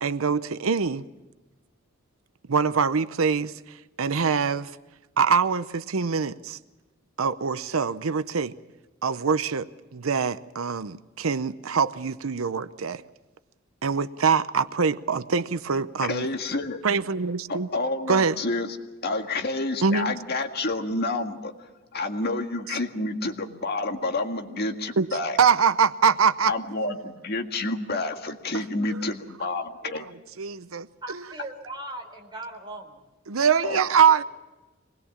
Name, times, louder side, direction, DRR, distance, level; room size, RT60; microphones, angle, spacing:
voice 1, 0.0-1.0 2.5-3.5 4.0-4.7 5.2-6.6 7.2-8.5 9.0-9.7 9.9-13.0 13.8-16.3 16.8-17.7 18.1-18.3 19.8-20.2 25.0-25.1 25.4-26.5 29.9-30.0 30.4-31.2 33.3-34.2, right 6 dB, 85° right, 0.7 m, -24 dB
voice 2, 16.0-16.8 17.5-18.8 19.0-21.5 21.9-25.4 26.5-30.1 33.6-33.8, left 2 dB, 50° left, 1.9 m, -29 dB
voice 3, 31.0-33.0, right 2 dB, 20° right, 4.0 m, -38 dB
25.5 x 20.5 x 7.3 m
head